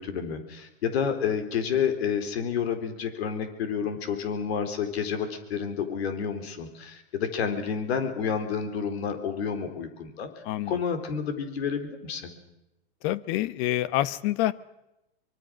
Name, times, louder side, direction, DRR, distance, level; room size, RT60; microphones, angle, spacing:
voice 1, 0.0-12.3, left 7 dB, 70° left, 8 dB, 3.9 m, -30 dB
voice 2, 10.4-10.8 13.0-14.5, left 14 dB, 50° left, 18 dB, 1.2 m, -27 dB
24.5 x 24.0 x 6.3 m, 0.92 s
hypercardioid pair, 110°, 32 cm